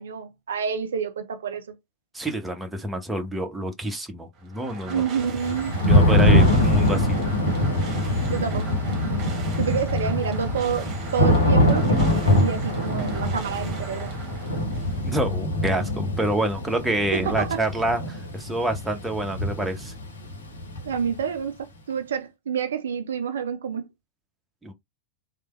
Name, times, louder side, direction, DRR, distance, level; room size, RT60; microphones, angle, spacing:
voice 1, 0.0-1.8 4.8-5.8 6.3-6.5 8.3-8.7 9.6-14.2 17.1-17.6 20.9-23.9, right 7 dB, 65° right, 0.4 m, -28 dB
voice 2, 2.1-5.0 5.9-7.2 15.0-19.9 24.6-24.7, right 1 dB, 5° right, 0.8 m, -27 dB
sound 1, 4.3-15.2, right 3 dB, 35° right, 1.0 m, -37 dB
Thunder / Rain, 5.4-21.2, left 1 dB, 70° left, 1.0 m, -23 dB
3.2 x 2.2 x 3.0 m
figure-of-eight pair, 90°, 0 cm